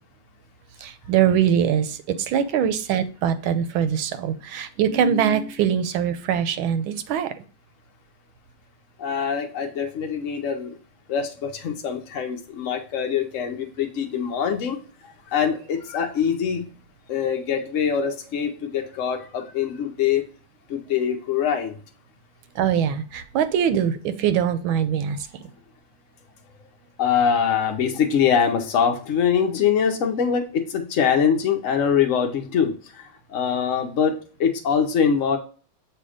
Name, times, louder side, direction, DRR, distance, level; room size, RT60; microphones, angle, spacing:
voice 1, 0.8-7.3 22.6-25.3, right 8 dB, 80° right, 11 dB, 1.5 m, -22 dB
voice 2, 9.0-10.8 11.1-16.7 17.1-20.3 20.7-21.8 27.0-35.4, left 7 dB, 70° left, 3 dB, 0.7 m, -23 dB
6.9 x 3.0 x 4.9 m, 0.38 s
omnidirectional pair, 2.2 m